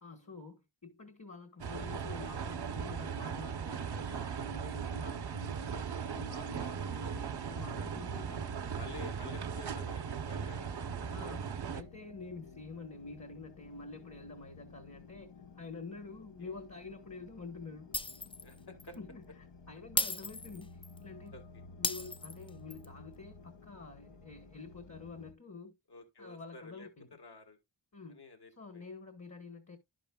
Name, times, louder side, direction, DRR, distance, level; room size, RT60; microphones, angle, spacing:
voice 1, 0.0-5.8 6.1-8.8 11.0-17.9 18.9-19.2 19.7-21.3 21.8-25.7 26.2-27.1 27.9-28.2 28.6-29.8, left 3 dB, 40° left, 1.3 m, -48 dB
sound 1, 1.6-11.8, right 6 dB, 60° right, 0.8 m, -38 dB
voice 2, 6.6-7.1 8.8-11.3 16.4-16.5 18.4-19.0 21.3-21.6 25.9-27.6 28.1-28.9, left 3 dB, 60° left, 1.6 m, -52 dB
sound 2, 7.9-25.3, left 4 dB, 75° left, 1.0 m, -55 dB
Shatter, 17.9-18.5 18.8-19.0 20.0-21.0 21.8-22.9, left 3 dB, 15° left, 0.4 m, -35 dB
11.0 x 6.1 x 2.3 m
wide cardioid pair, 95°, 44 cm